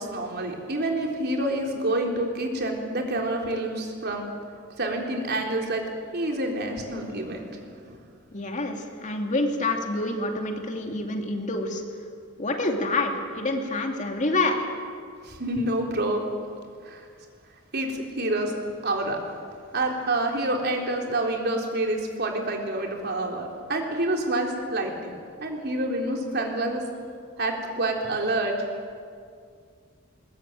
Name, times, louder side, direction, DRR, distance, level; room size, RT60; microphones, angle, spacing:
voice 1, 0.0-4.3 4.8-5.8 6.1-8.0 15.2-16.3 16.8-17.1 17.7-18.5 18.8-19.2 19.7-25.1 25.4-26.8 27.4-28.6, right 1 dB, 55° right, 1 dB, 3.8 m, -28 dB
voice 2, 8.3-11.8 12.4-14.7, left 2 dB, 40° left, 3 dB, 2.7 m, -27 dB
21.5 x 21.0 x 9.2 m, 2.2 s
head